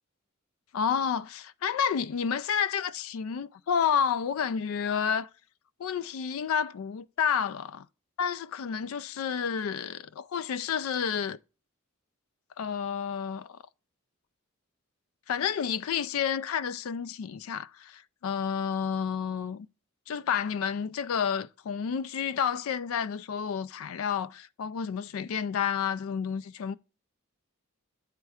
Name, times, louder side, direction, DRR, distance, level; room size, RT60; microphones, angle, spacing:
voice 1, 0.7-5.3 5.8-7.9 8.2-11.4 12.6-13.6 15.3-19.7 20.1-26.8, left 7 dB, 80° left, 0.4 m, -30 dB
8.8 x 4.5 x 4.8 m
head